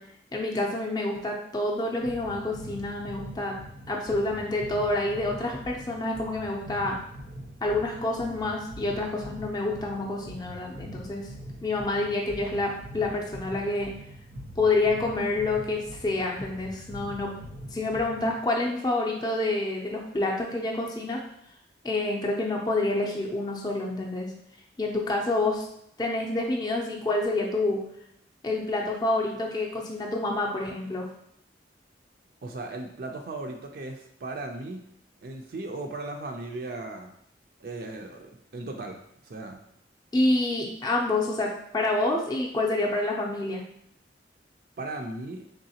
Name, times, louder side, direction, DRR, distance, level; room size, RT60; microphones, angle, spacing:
voice 1, 0.3-3.6 3.9-7.0 7.6-11.3 11.6-13.9 14.6-17.3 17.7-21.2 21.8-24.3 24.8-25.7 26.0-27.8 28.4-31.1 40.1-43.6, left 2 dB, 20° left, -1 dB, 0.5 m, -28 dB
sound 1, 2.0-18.4, equal, 90° right, 0.9 m, -43 dB
voice 2, 32.4-34.8 35.2-37.1 37.6-39.6 44.8-45.4, right 2 dB, 55° right, 3 dB, 0.4 m, -37 dB
3.8 x 3.4 x 2.8 m, 0.72 s
head